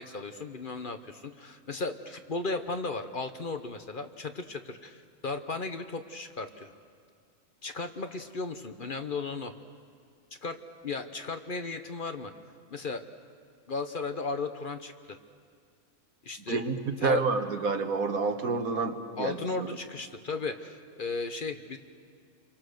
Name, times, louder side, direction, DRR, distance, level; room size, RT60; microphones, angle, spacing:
voice 1, 0.0-6.7 7.6-9.5 10.4-10.6 10.8-12.3 12.7-13.0 13.7-15.2 16.2-16.6 17.0-17.2 19.2-21.8, left 3 dB, 40° left, 7 dB, 1.0 m, -35 dB
voice 2, 17.0-19.7, right 4 dB, 85° right, 6 dB, 1.8 m, -29 dB
28.0 x 24.0 x 6.6 m, 2.1 s
omnidirectional pair, 1.4 m